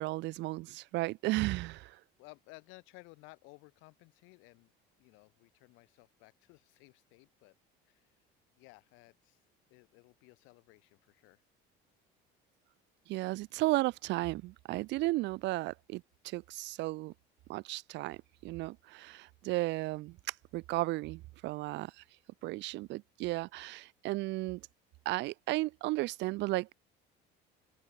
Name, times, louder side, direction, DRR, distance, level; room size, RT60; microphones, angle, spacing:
voice 1, 0.0-2.0 13.1-17.1 17.5-22.0 22.4-24.6 25.0-26.7, right 19 dB, 60° right, 1.6 m, -34 dB
voice 2, 2.2-4.7 5.0-7.5 7.8-8.2 8.6-9.4 9.7-11.4, left 26 dB, 75° left, 6.7 m, -57 dB
open air
cardioid pair, 150°, 20 cm